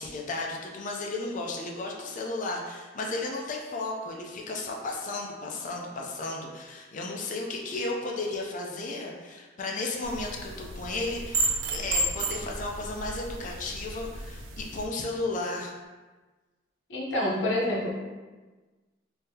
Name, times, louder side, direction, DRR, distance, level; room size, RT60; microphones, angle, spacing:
voice 1, 0.0-15.7, left 2 dB, 40° left, 0 dB, 0.4 m, -34 dB
sound 1, 10.0-14.9, right 2 dB, 85° right, 0.4 m, -32 dB
voice 2, 16.9-17.9, left 1 dB, 70° left, -4 dB, 0.9 m, -27 dB
3.7 x 2.7 x 2.7 m, 1.3 s
head